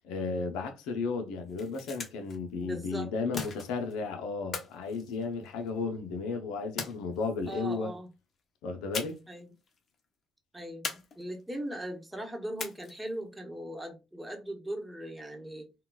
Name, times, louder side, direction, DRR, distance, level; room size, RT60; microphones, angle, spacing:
voice 1, 0.0-7.9 8.6-9.2, left 4 dB, 85° left, 0.6 m, -34 dB
sound 1, 1.4-2.4 3.3-4.0 4.5-5.8 6.8-7.5 8.9-9.4 9.7-9.8 10.8-11.6 12.6-13.1, left 5 dB, 50° left, 0.8 m, -40 dB
voice 2, 2.5-3.1 7.5-8.1 9.3-9.5 10.5-15.7, right 1 dB, 10° right, 1.0 m, -39 dB
3.7 x 2.3 x 2.3 m
supercardioid pair, 70°, 0 cm